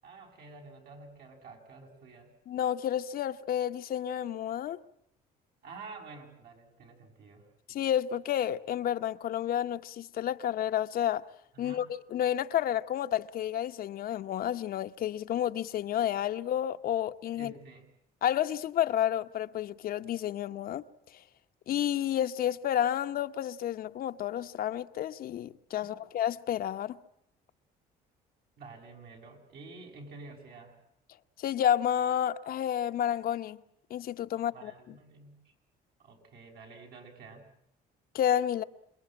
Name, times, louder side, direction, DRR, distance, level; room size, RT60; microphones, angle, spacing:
voice 1, 0.0-2.3 5.6-7.5 11.5-11.9 17.3-17.9 25.8-26.0 28.6-30.8 34.3-35.5 36.0-37.5, right 3 dB, 65° right, 6.6 m, -49 dB
voice 2, 2.5-4.8 7.7-11.2 11.6-17.5 18.2-20.8 21.7-27.0 31.4-33.6 33.9-34.7 38.1-38.6, left 10 dB, 60° left, 1.0 m, -30 dB
27.5 x 22.0 x 8.7 m
cardioid pair, 110°, 17 cm